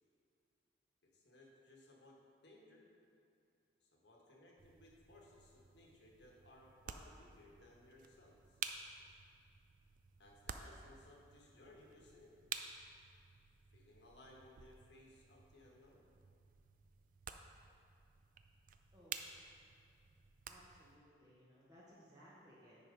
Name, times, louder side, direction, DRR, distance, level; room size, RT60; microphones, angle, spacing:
voice 1, 1.1-2.9 3.8-8.6 10.2-12.3 13.7-16.0, left 1 dB, 70° left, -2 dB, 1.4 m, -62 dB
sound 1, 4.6-21.0, right 7 dB, 45° right, 0.4 m, -52 dB
voice 2, 20.5-22.8, equal, 20° right, -8 dB, 1.1 m, -62 dB
9.7 x 4.6 x 5.1 m, 2.5 s
head